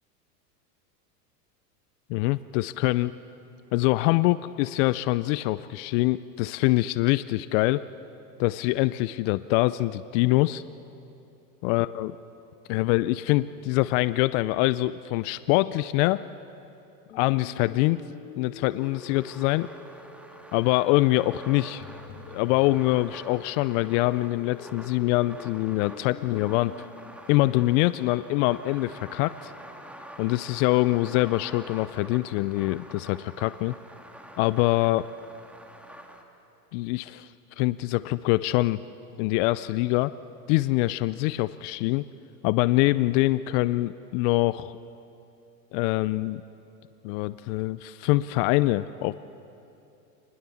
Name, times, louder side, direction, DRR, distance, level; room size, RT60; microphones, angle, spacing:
voice 1, 2.1-3.1 3.7-7.8 8.4-10.6 11.6-12.1 12.7-16.2 17.1-18.0 18.4-19.7 20.5-21.8 22.3-26.7 27.3-29.5 30.2-33.7 34.4-35.1 36.7-37.3 37.6-38.8 39.2-40.1 40.5-42.0 42.4-44.8 45.7-46.4 47.0-49.1, left 19 dB, 50° left, 16 dB, 0.6 m, -24 dB
sound 1, 17.1-27.1, left 5 dB, 75° left, 2.4 m, -46 dB
sound 2, 18.6-36.2, right 1 dB, 5° right, 2.2 m, -47 dB
27.0 x 20.5 x 7.2 m, 2.8 s
hypercardioid pair, 100°, 47 cm